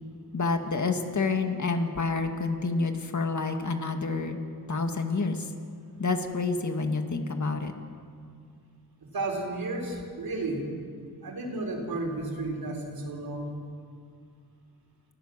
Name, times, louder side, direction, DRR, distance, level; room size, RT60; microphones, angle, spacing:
voice 1, 0.3-4.4 4.7-5.4 6.0-7.7, left 3 dB, 50° left, 5 dB, 2.0 m, -28 dB
voice 2, 9.1-10.7 11.2-13.5, right 2 dB, 70° right, 2 dB, 4.0 m, -32 dB
29.0 x 15.0 x 7.4 m, 2.3 s
wide cardioid pair, 95°, 37 cm